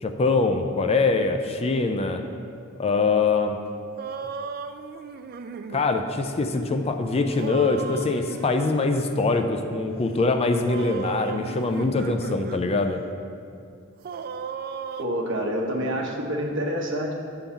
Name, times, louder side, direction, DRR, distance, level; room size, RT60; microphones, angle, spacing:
voice 1, 0.0-2.2 2.8-3.6 5.7-13.0, left 3 dB, 30° left, 6 dB, 0.4 m, -23 dB
sound 1, 4.0-5.8 7.3-8.6 10.7-12.6 13.0-13.1 14.0-15.1, right 6 dB, 45° right, 0.4 m, -35 dB
voice 2, 15.0-17.1, equal, 60° right, 0 dB, 1.1 m, -27 dB
8.4 x 3.9 x 7.0 m, 2.4 s
head